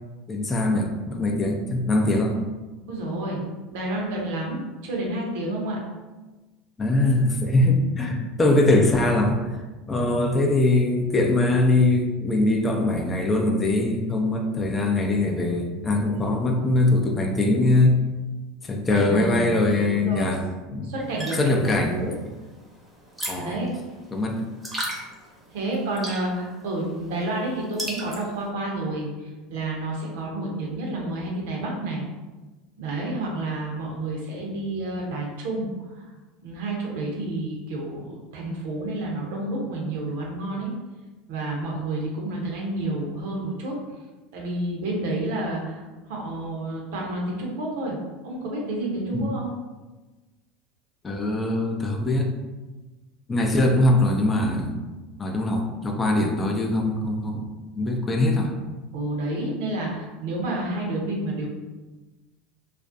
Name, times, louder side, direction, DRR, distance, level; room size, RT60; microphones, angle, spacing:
voice 1, 0.3-2.4 6.8-18.0 18.6-20.4 20.7-20.9 21.4-21.9 23.3-23.6 24.1-24.4 49.1-49.3 51.0-52.3 53.3-54.8 55.2-57.5 57.8-58.5, left 2 dB, 25° left, 2 dB, 0.4 m, -22 dB
voice 2, 2.9-3.4 3.7-5.8 16.1-16.2 18.9-20.4 20.8-22.1 23.4-23.7 25.5-32.0 32.8-36.1 36.4-40.7 41.3-43.8 44.3-48.0 48.2-49.5 58.9-61.5, right 2 dB, 70° right, -2 dB, 0.6 m, -30 dB
sound 1, 21.0-28.5, right 1 dB, 10° right, 0.7 m, -37 dB
2.4 x 2.0 x 2.5 m, 1.2 s
hypercardioid pair, 85°, 0 cm